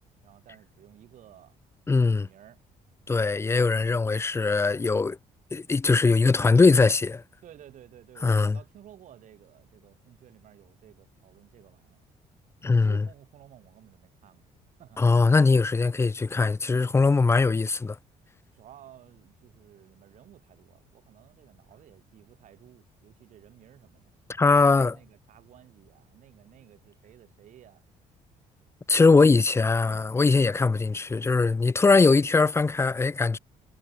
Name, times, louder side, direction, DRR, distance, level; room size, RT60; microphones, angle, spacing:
voice 1, 0.2-1.6 2.1-2.6 7.4-12.0 12.8-14.5 14.8-15.0 18.5-27.8 29.0-29.3 31.7-31.8, right 11 dB, 60° right, 7.7 m, -53 dB
voice 2, 1.9-2.3 3.1-5.2 5.5-7.2 8.2-8.6 12.6-13.0 15.0-18.0 24.4-25.0 28.9-33.4, left 4 dB, 20° left, 1.0 m, -21 dB
cardioid pair, 125°, 14 cm